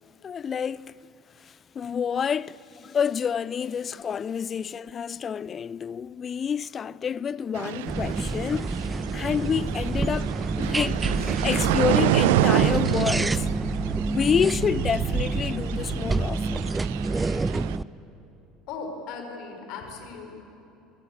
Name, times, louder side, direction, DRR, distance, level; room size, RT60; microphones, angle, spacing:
voice 1, 0.2-0.9 1.4-10.3 10.6-13.5 14.1-16.7, left 7 dB, 30° left, 0.5 m, -28 dB
sound 1, 7.5-17.8, right 14 dB, 60° right, 0.6 m, -28 dB
sound 2, 7.9-17.8, right 3 dB, 15° right, 0.5 m, -28 dB
voice 2, 18.7-20.3, left 4 dB, 50° left, 4.8 m, -37 dB
24.0 x 22.5 x 8.6 m
figure-of-eight pair, 65°, 0 cm